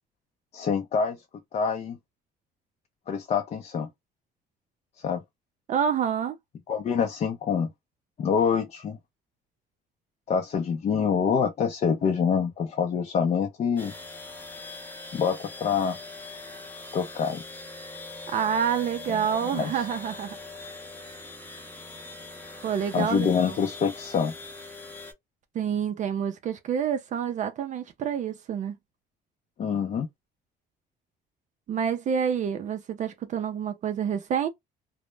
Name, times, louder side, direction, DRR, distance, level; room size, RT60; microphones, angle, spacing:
voice 1, 0.5-1.2 1.5-2.0 3.1-3.9 5.0-5.2 6.7-7.7 8.2-9.0 10.3-13.9 15.1-16.0 16.9-17.4 19.5-19.7 22.9-24.3 29.6-30.1, left 6 dB, 40° left, 0.5 m, -26 dB
voice 2, 5.7-6.4 18.3-20.3 22.6-23.6 25.5-28.8 31.7-34.5, right 8 dB, 45° right, 0.4 m, -28 dB
sound 1, 13.8-25.1, left 3 dB, 10° left, 0.7 m, -42 dB
2.0 x 2.0 x 3.1 m
cardioid pair, 110°, 17 cm